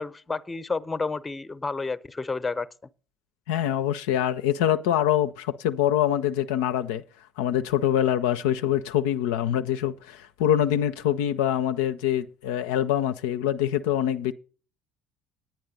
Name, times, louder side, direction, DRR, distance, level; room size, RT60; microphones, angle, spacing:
voice 1, 0.0-2.7, left 4 dB, 15° left, 0.7 m, -30 dB
voice 2, 3.5-7.0 7.4-14.3, left 11 dB, 65° left, 0.4 m, -24 dB
10.5 x 9.4 x 5.0 m
figure-of-eight pair, 55°, 0 cm